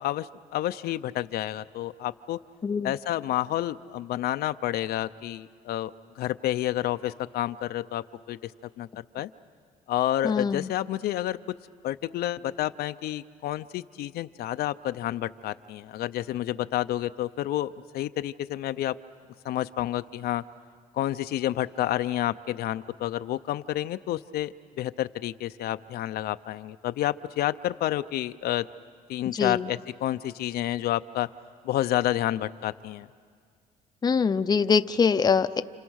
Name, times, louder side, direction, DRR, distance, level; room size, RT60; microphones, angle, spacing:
voice 1, 0.0-2.4 2.8-5.9 6.2-8.5 8.8-8.9 9.1-9.3 9.9-11.4 11.8-19.0 19.4-20.4 20.9-28.7 29.1-31.3 31.6-33.1, left 13 dB, 70° left, 11 dB, 0.6 m, -29 dB
voice 2, 10.2-10.7 29.3-29.7 34.0-35.6, left 5 dB, 25° left, 11 dB, 0.6 m, -23 dB
30.0 x 28.0 x 6.4 m, 2.1 s
cardioid pair, 110°, 17 cm